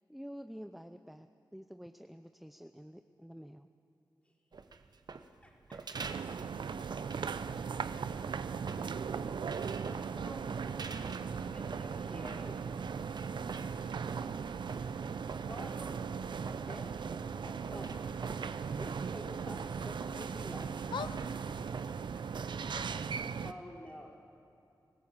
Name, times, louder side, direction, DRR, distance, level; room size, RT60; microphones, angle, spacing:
voice 1, 0.1-1.3 1.5-3.7, equal, ahead, 8 dB, 0.7 m, -48 dB
sound 1, 4.5-22.6, right 4 dB, 60° right, 1.0 m, -49 dB
voice 2, 5.4-5.8 9.9-11.0 11.4-12.6 15.5-16.1 16.5-17.0 17.4-18.1 18.8-20.7 23.4-24.1, left 1 dB, 15° left, -3 dB, 4.8 m, -49 dB
sound 2, 5.9-23.5, right 6 dB, 80° right, 0.6 m, -38 dB
voice 3, 20.9-21.4 22.7-23.3, left 7 dB, 85° left, 12 dB, 0.5 m, -42 dB
25.5 x 15.5 x 7.4 m, 2.6 s
cardioid pair, 55°, 8 cm